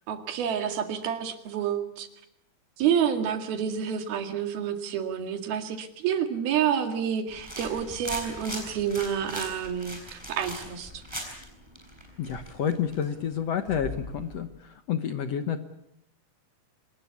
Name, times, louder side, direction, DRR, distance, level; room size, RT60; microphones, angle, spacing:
voice 1, 0.1-2.1 2.8-11.0, right 8 dB, 80° right, 7 dB, 3.9 m, -29 dB
sound 1, 7.3-14.4, equal, 5° right, 6.1 m, -40 dB
voice 2, 12.2-15.6, left 8 dB, 70° left, 9 dB, 1.6 m, -29 dB
25.5 x 20.0 x 8.5 m, 0.76 s
omnidirectional pair, 4.3 m